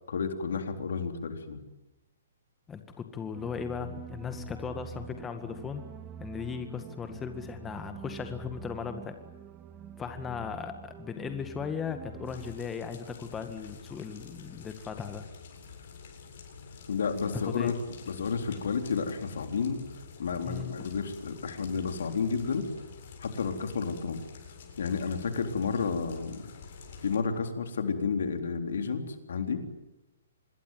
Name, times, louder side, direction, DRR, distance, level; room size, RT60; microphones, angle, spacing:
voice 1, 0.1-1.6 16.9-17.7 18.1-19.8 20.2-22.6 23.2-24.2 24.8-26.4 27.0-29.6, left 5 dB, 70° left, 6 dB, 3.8 m, -31 dB
voice 2, 2.7-5.8 6.2-9.2 10.0-15.2 17.3-17.7 20.4-20.9, left 6 dB, 15° left, 7 dB, 1.9 m, -37 dB
sound 1, 3.3-12.6, right 8 dB, 20° right, 2.4 m, -46 dB
sound 2, 12.2-27.2, left 5 dB, 55° left, 7.8 m, -48 dB
26.0 x 21.0 x 9.4 m, 0.98 s
hypercardioid pair, 135°, 0 cm